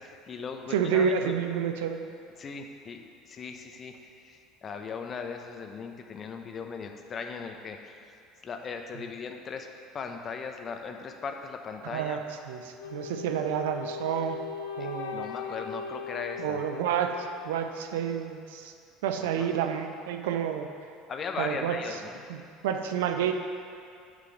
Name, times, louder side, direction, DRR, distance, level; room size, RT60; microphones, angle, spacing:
voice 1, 0.0-1.3 2.4-8.2 8.4-9.7 9.9-12.2 14.8-16.6 19.3-19.5 21.1-22.2, left 5 dB, 40° left, 4 dB, 0.9 m, -38 dB
voice 2, 0.7-2.0 11.8-14.4 14.8-15.3 16.4-18.7 19.0-20.7 21.4-22.0 22.3-23.3, right 8 dB, 75° right, 6 dB, 0.6 m, -29 dB
Wind instrument woodwind instrument, 12.8-17.8, left 6 dB, 75° left, 0.7 m, -39 dB
8.3 x 5.2 x 7.3 m, 2.3 s
hypercardioid pair, 65°, 0 cm